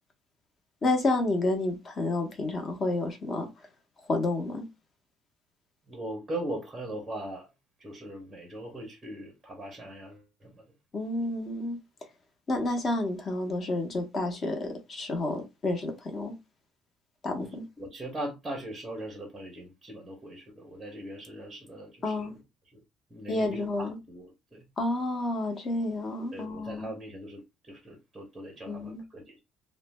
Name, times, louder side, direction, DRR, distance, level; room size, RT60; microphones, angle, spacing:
voice 1, 0.8-3.5 4.1-4.6 10.9-11.8 12.5-16.3 17.2-17.6 22.0-22.3 23.3-24.0 24.8-26.9 28.7-29.0, left 2 dB, 25° left, 0.7 m, -30 dB
voice 2, 5.9-7.5 7.8-10.6 17.4-22.3 23.1-24.7 26.3-29.4, right 1 dB, 10° right, 0.7 m, -40 dB
2.5 x 2.1 x 3.1 m
cardioid pair, 165°, 0 cm